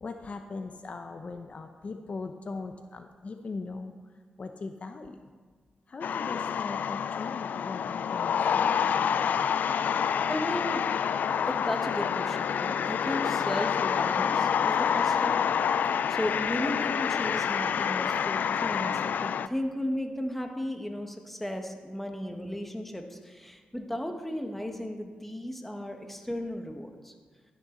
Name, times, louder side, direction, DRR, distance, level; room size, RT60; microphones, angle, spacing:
voice 1, 0.0-3.9 4.4-5.2 5.9-8.9, left 3 dB, 45° left, 6 dB, 0.7 m, -40 dB
sound 1, 6.0-19.5, left 7 dB, 75° left, 0.3 m, -27 dB
voice 2, 10.3-10.9 11.5-15.4 16.1-27.1, equal, 5° left, 4 dB, 1.3 m, -35 dB
13.0 x 10.5 x 3.9 m, 1.5 s
cardioid pair, 85°, 3 cm